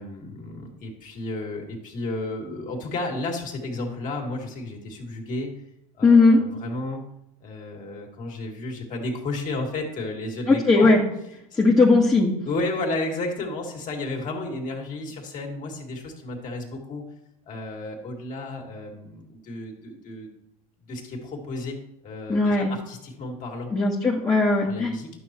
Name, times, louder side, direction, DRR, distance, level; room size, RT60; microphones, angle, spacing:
voice 1, 0.0-5.5 5.9-7.0 7.4-10.9 12.4-17.0 17.5-20.3 20.8-21.8 22.0-23.7 24.4-25.1, left 2 dB, 40° left, 1 dB, 2.4 m, -32 dB
voice 2, 6.0-6.4 10.5-11.0 11.6-12.3 22.3-22.7 23.7-24.9, left 3 dB, 20° left, -4 dB, 1.5 m, -18 dB
12.0 x 6.2 x 3.0 m, 0.80 s
hypercardioid pair, 85°, 19 cm